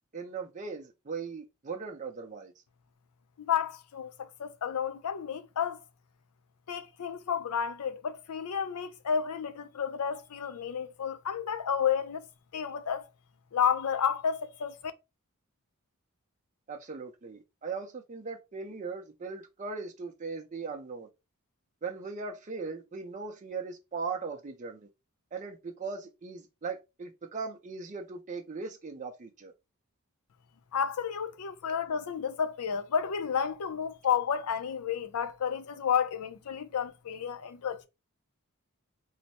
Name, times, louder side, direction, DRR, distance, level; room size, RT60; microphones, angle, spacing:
voice 1, 0.1-2.5 16.7-21.1 21.8-24.9 25.3-29.5, right 4 dB, 35° right, 0.5 m, -39 dB
voice 2, 3.4-5.8 6.7-12.3 12.5-13.0 13.5-14.7 30.7-37.9, left 7 dB, 85° left, 0.5 m, -31 dB
3.1 x 2.1 x 4.1 m
head